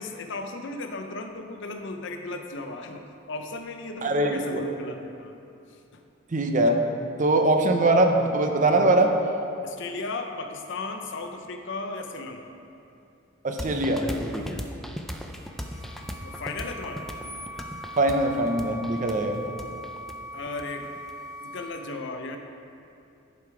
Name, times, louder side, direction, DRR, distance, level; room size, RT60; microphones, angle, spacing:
voice 1, 0.0-5.3 5.9-6.0 9.6-12.6 15.7-17.1 20.3-20.9 21.4-22.4, left 3 dB, 65° left, 5 dB, 0.7 m, -36 dB
voice 2, 4.0-4.6 6.3-6.8 7.2-9.1 13.4-14.1 18.0-19.4, right 2 dB, 40° right, 4 dB, 0.7 m, -22 dB
sound 1, 13.6-21.1, equal, ahead, 0.4 m, -37 dB
sound 2, 15.3-21.7, equal, 25° right, 1.9 m, -41 dB
10.5 x 5.0 x 4.8 m, 2.6 s
head